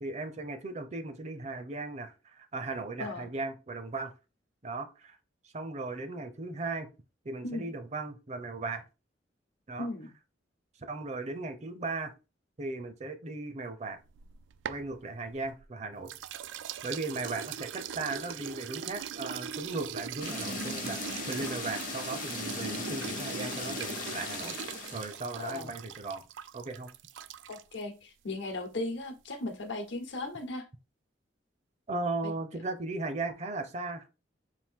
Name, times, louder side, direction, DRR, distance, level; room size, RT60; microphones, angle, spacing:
voice 1, 0.0-4.1 4.6-5.2 5.4-6.9 7.2-8.8 9.7-9.9 10.9-12.1 12.6-14.0 14.7-16.1 16.8-24.6 24.9-26.2 26.5-26.9 31.9-34.1, right 3 dB, 40° right, 0.6 m, -37 dB
voice 2, 3.0-3.3 7.4-7.7 9.8-10.1 25.3-25.7 27.5-30.7 32.2-32.3, left 2 dB, 80° left, 0.9 m, -37 dB
sound 1, 14.1-15.7 16.1-27.8, right 8 dB, 85° right, 0.3 m, -41 dB
sound 2, 20.2-25.2, left 4 dB, 45° left, 0.7 m, -38 dB
4.3 x 2.6 x 3.6 m
head